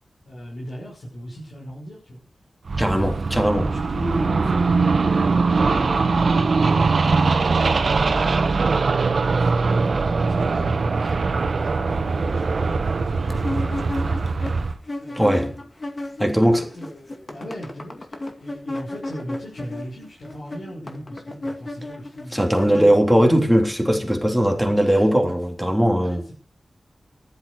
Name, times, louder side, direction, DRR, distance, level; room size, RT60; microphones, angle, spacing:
voice 1, 0.3-2.2 2.7-13.4 13.7-14.4 15.0-15.6 16.5-23.0 24.9-25.1 26.0-26.3, equal, 85° left, 6.0 m, -37 dB
sound 1, 2.7-14.7, right 4 dB, 75° right, 1.7 m, -21 dB
voice 2, 2.8-3.7 15.2-15.5 16.2-16.6 22.3-26.2, equal, ahead, 3.4 m, -19 dB
sound 2, 13.3-16.4 16.7-23.4, left 1 dB, 40° left, 2.1 m, -33 dB
14.0 x 12.0 x 6.5 m
wide cardioid pair, 105°, 0 cm